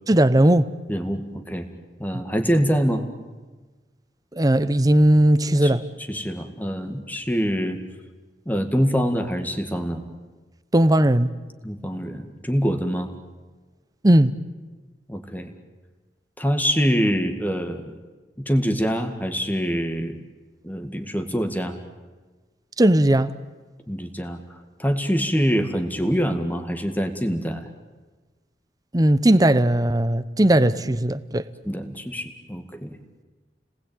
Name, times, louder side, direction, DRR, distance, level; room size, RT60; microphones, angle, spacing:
voice 1, 0.1-0.7 4.4-5.8 10.7-11.3 14.0-14.3 22.8-23.3 28.9-31.4, right 1 dB, 20° right, 0.8 m, -17 dB
voice 2, 0.9-1.7 2.0-3.0 5.6-5.8 6.1-7.8 8.5-10.0 11.6-13.1 15.1-15.5 16.4-17.9 18.4-20.1 20.6-21.8 23.9-27.7 31.6-33.0, equal, 10° left, 2.0 m, -25 dB
30.0 x 20.0 x 9.0 m
head